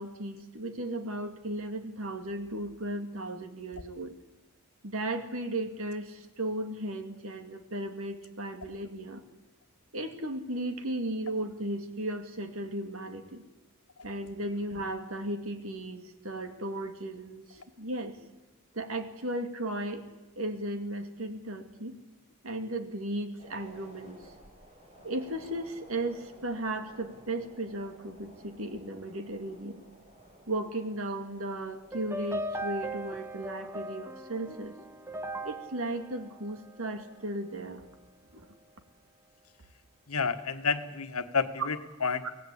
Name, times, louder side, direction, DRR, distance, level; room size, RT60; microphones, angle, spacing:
voice 1, 0.0-4.1 4.8-9.2 9.9-13.4 14.0-18.2 18.7-20.0 20.4-22.0 22.4-24.2 25.0-29.9 30.5-34.8 35.4-37.8 38.3-38.5, right 1 dB, 65° right, 7 dB, 2.3 m, -35 dB
sound 1, 23.4-38.0 38.3-38.4, equal, 30° right, 4.3 m, -57 dB
sound 2, 31.9-37.2, right 1 dB, 10° right, 1.0 m, -39 dB
voice 2, 40.1-42.3, left 5 dB, 80° left, 9 dB, 1.4 m, -30 dB
24.5 x 17.5 x 8.6 m, 1.1 s
head